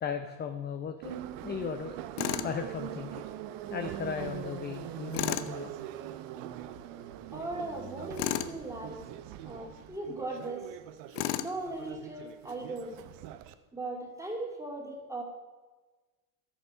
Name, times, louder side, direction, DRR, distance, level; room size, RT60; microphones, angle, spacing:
voice 1, 0.0-1.9 2.4-3.1 3.7-5.7, left 7 dB, 20° left, 7 dB, 0.5 m, -36 dB
Subway metro underground, 1.0-13.5, right 12 dB, 65° right, 0.8 m, -42 dB
Tools, 2.2-2.5 5.1-5.5 8.2-8.5 11.1-11.6, left 14 dB, 60° left, 0.8 m, -32 dB
voice 2, 7.3-9.1 9.4-10.7 11.4-13.0 13.7-15.2, right 2 dB, 5° right, 1 dB, 2.2 m, -38 dB
13.0 x 6.6 x 5.6 m, 1.3 s
supercardioid pair, 110°, 47 cm